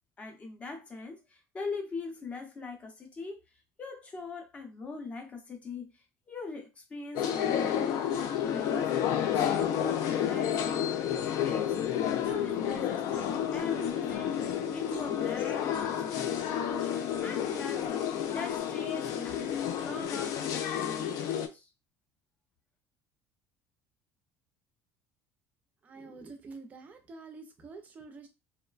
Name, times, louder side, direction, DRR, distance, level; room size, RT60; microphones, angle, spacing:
voice 1, 0.2-3.4 3.8-7.8 8.5-21.7, left 3 dB, 20° left, 3 dB, 0.6 m, -42 dB
sound 1, 7.2-21.5, left 9 dB, 60° left, 0.4 m, -30 dB
sound 2, 8.1-8.3 9.5-9.7 10.5-10.7 11.1-11.3 11.7-11.9 12.2-12.3 12.7-12.8 13.1-14.5 14.9-15.1 15.4-15.9 16.3-16.5 17.1-17.2 17.8-17.9 18.5-18.6, left 4 dB, 75° left, 0.8 m, -52 dB
voice 2, 25.8-28.3, right 3 dB, 25° right, 7 dB, 0.5 m, -47 dB
3.0 x 2.1 x 2.3 m, 0.26 s
cardioid pair, 160°, 7 cm